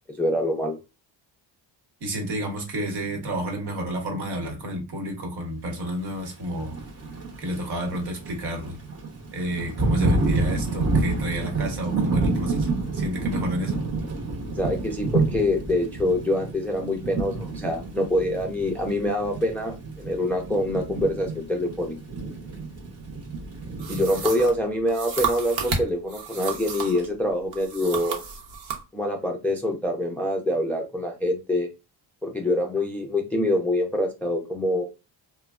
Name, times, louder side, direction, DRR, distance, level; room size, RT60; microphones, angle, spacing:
voice 1, 0.2-0.8 14.6-22.0 23.9-28.2 28.9-31.7 32.2-34.8, left 1 dB, 5° left, 0.4 m, -25 dB
voice 2, 2.0-6.8 7.4-8.8 9.3-13.8, equal, 60° right, 1.1 m, -30 dB
Thunder / Rain, 6.4-24.5, right 3 dB, 35° right, 0.9 m, -29 dB
sound 1, 23.8-27.1 27.5-28.8, right 5 dB, 80° right, 0.9 m, -31 dB
3.1 x 2.2 x 2.3 m
cardioid pair, 115°, 44 cm